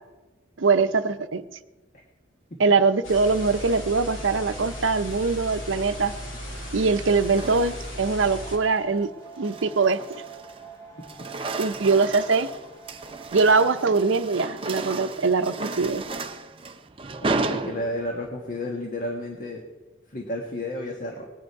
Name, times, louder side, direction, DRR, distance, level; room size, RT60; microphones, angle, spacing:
voice 1, 0.6-1.4 2.6-6.1 6.7-9.1 9.4-10.0 11.6-12.5 13.3-16.0, right 4 dB, 70° right, 11 dB, 0.6 m, -22 dB
sound 1, 3.0-8.6, equal, 75° left, 3.2 m, -36 dB
sound 2, 4.9-5.4 6.5-8.1 8.5-8.8 9.3-10.7 11.0-18.3, right 3 dB, 25° right, 0.5 m, -34 dB
sound 3, 8.3-13.4, right 5 dB, 20° left, 2.8 m, -46 dB
voice 2, 17.2-19.6 20.1-21.3, left 1 dB, 40° left, 1 dB, 1.4 m, -32 dB
19.5 x 9.5 x 4.7 m, 1.2 s
head